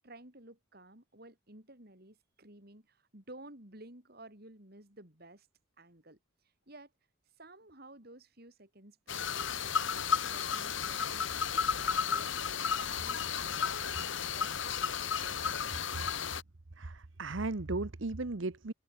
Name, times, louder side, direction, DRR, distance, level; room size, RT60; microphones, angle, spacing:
voice 1, 0.0-5.5 5.8-6.2 6.7-6.9 7.4-16.0, right 1 dB, 45° right, 4.3 m, -54 dB
sound 1, 9.1-16.4, left 7 dB, 60° left, 1.5 m, -33 dB
voice 2, 16.8-18.7, right 2 dB, 60° right, 1.0 m, -36 dB
open air
head